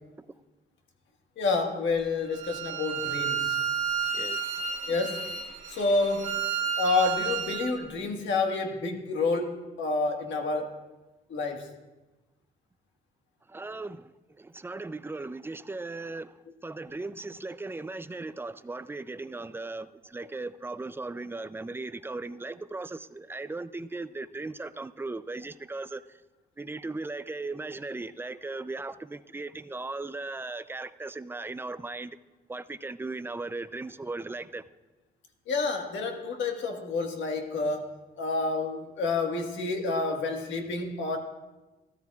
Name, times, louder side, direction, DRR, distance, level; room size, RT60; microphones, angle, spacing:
voice 1, 1.4-3.5 4.9-5.3 5.7-6.4 6.8-10.8 11.3-11.7 35.5-37.9 38.2-41.2, left 3 dB, 70° left, 1.6 m, -29 dB
Bowed string instrument, 2.3-7.7, right 7 dB, 90° right, 1.8 m, -31 dB
voice 2, 13.5-14.1 14.4-16.3 16.6-26.0 26.6-32.2 32.5-34.6, right 3 dB, 10° right, 0.4 m, -37 dB
15.5 x 13.0 x 2.4 m
cardioid pair, 90°, 20 cm